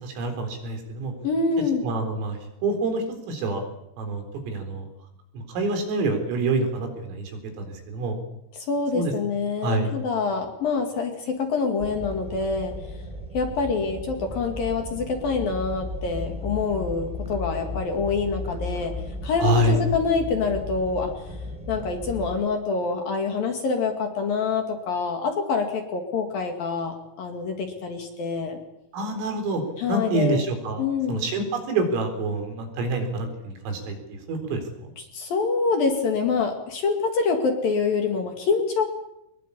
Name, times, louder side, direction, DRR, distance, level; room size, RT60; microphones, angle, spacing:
voice 1, 0.0-1.1 1.8-3.6 4.0-4.9 5.3-7.2 7.6-8.2 8.9-9.1 9.6-9.9 19.4-19.8 28.9-29.6 29.9-30.8 31.1-34.9, right 2 dB, 75° right, 5 dB, 6.6 m, -27 dB
voice 2, 1.2-1.8 8.5-12.7 13.3-18.9 19.2-21.3 21.7-28.6 29.8-30.4 30.8-31.3 35.1-38.8, left 4 dB, 50° left, 4 dB, 3.4 m, -26 dB
sound 1, 11.8-22.4, left 2 dB, ahead, 4.4 m, -35 dB
24.0 x 21.5 x 8.6 m, 0.86 s
omnidirectional pair, 6.0 m